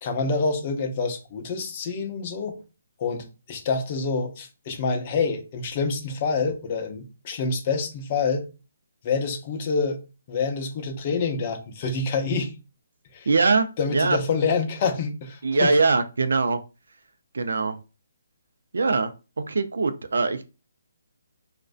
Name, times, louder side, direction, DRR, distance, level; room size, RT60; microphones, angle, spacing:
voice 1, 0.0-2.6 3.0-8.5 9.0-10.0 10.3-12.5 13.1-13.3 13.8-15.7, left 4 dB, 30° left, 5 dB, 0.5 m, -27 dB
voice 2, 13.3-14.2 15.4-16.6 17.3-17.8 18.7-19.1 19.5-20.5, right 3 dB, 80° right, 9 dB, 0.4 m, -22 dB
2.5 x 2.1 x 2.4 m, 0.31 s
hypercardioid pair, 160°, 0 cm